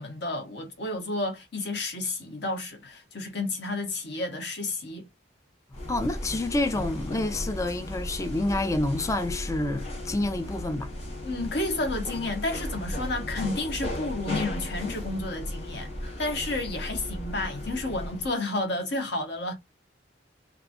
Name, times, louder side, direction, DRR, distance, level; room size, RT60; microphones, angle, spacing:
voice 1, 0.0-5.1 11.2-19.5, left 2 dB, 65° left, 0.9 m, -31 dB
sound 1, 5.7-18.3, left 1 dB, 35° left, 1.2 m, -35 dB
voice 2, 5.7-10.9, left 2 dB, 15° left, 0.3 m, -28 dB
2.9 x 2.4 x 2.5 m
head